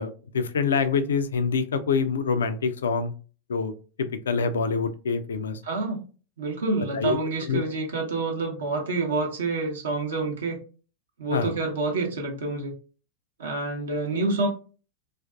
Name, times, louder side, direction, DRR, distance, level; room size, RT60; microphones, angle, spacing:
voice 1, 0.0-3.1 3.5-3.7 4.0-5.6 6.9-7.2 7.5-7.6 11.3-11.5, left 5 dB, 65° left, 11 dB, 0.3 m, -25 dB
voice 2, 5.6-6.0 6.4-10.6 11.2-12.7 13.4-14.5, right 3 dB, 65° right, 0 dB, 0.6 m, -28 dB
2.4 x 2.4 x 2.3 m, 0.36 s
figure-of-eight pair, 90°, 0 cm